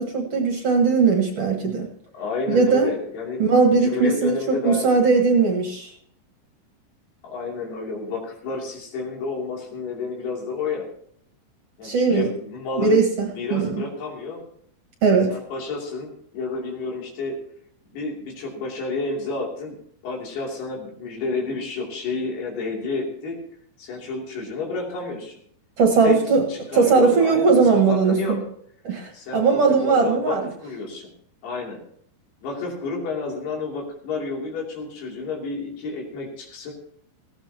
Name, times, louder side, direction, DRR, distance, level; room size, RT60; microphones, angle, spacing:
voice 1, 0.0-1.9 2.5-2.9 3.4-5.9 11.8-12.3 12.8-13.8 15.0-15.4 25.8-26.4 26.7-28.4 28.8-30.5, right 4 dB, 50° right, 2 dB, 2.1 m, -19 dB
voice 2, 2.1-3.5 3.7-5.2 7.2-10.9 11.8-13.0 13.3-14.4 15.3-17.4 17.9-19.8 20.0-23.4 23.8-25.4 26.0-26.2 26.5-28.4 29.1-31.1 31.4-31.8 32.4-36.7, left 3 dB, 90° left, -2 dB, 5.1 m, -30 dB
18.0 x 15.0 x 2.9 m, 0.66 s
omnidirectional pair, 4.5 m